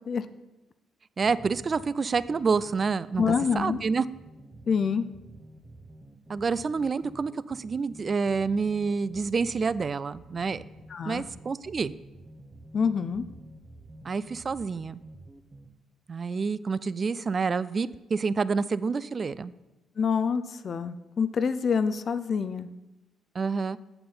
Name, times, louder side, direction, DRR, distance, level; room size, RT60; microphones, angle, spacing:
sound 1, 1.2-15.7, right 1 dB, 20° right, 0.8 m, -49 dB
voice 1, 1.2-4.1 6.3-10.6 11.1-11.9 14.0-15.0 16.1-19.5 23.3-23.8, right 5 dB, 40° right, 18 dB, 0.3 m, -28 dB
voice 2, 3.2-3.8 4.7-5.1 10.9-11.2 12.7-13.2 20.0-22.7, left 6 dB, 50° left, 12 dB, 0.5 m, -26 dB
7.6 x 6.9 x 5.5 m, 0.99 s
cardioid pair, 90°, 0 cm